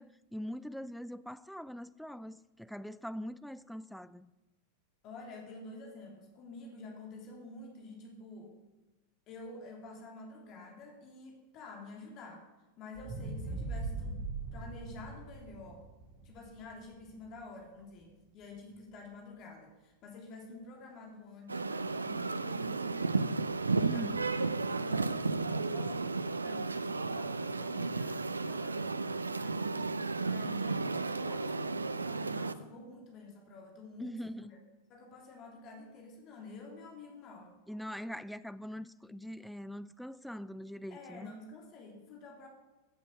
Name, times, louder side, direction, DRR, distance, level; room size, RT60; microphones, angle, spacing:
voice 1, 0.0-4.3 23.8-24.2 34.0-34.5 37.7-41.3, equal, ahead, 0.4 m, -43 dB
voice 2, 5.0-8.6 9.3-12.5 12.8-15.8 16.2-23.4 23.9-24.5 24.8-29.6 30.2-34.6 34.9-37.5 40.9-42.5, left 2 dB, 35° left, 3.1 m, -49 dB
sound 1, 12.9-17.2 17.7-17.8, right 3 dB, 45° right, 3.4 m, -40 dB
sound 2, 21.5-32.5, right 3 dB, 80° right, 0.6 m, -33 dB
15.0 x 8.2 x 6.9 m
figure-of-eight pair, 90°, 0 cm